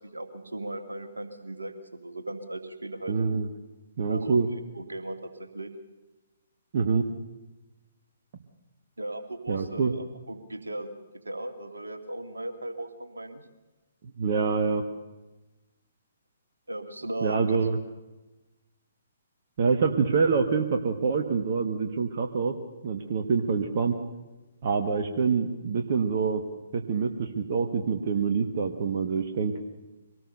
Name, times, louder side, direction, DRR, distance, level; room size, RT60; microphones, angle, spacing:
voice 1, 0.1-3.2 4.0-5.7 9.0-10.9 11.2-13.4 16.7-17.7, right 1 dB, 75° right, 7 dB, 2.4 m, -37 dB
voice 2, 3.1-3.5 4.0-4.5 6.7-7.1 9.5-9.9 14.2-14.8 17.2-17.8 19.6-22.5 22.8-23.9 24.6-26.4 26.7-29.5, right 5 dB, 45° right, 5 dB, 1.5 m, -26 dB
24.0 x 19.0 x 6.8 m, 1.1 s
figure-of-eight pair, 125°, 0 cm